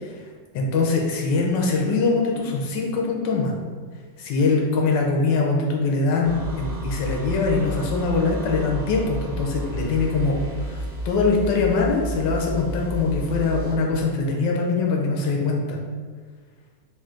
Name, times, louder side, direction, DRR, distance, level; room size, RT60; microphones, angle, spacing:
voice 1, 0.5-3.5 4.2-15.8, left 3 dB, 85° left, 0 dB, 1.3 m, -23 dB
sound 1, 6.2-13.8, right 1 dB, 60° right, 1.4 m, -31 dB
3.7 x 2.5 x 3.7 m, 1.5 s
omnidirectional pair, 2.0 m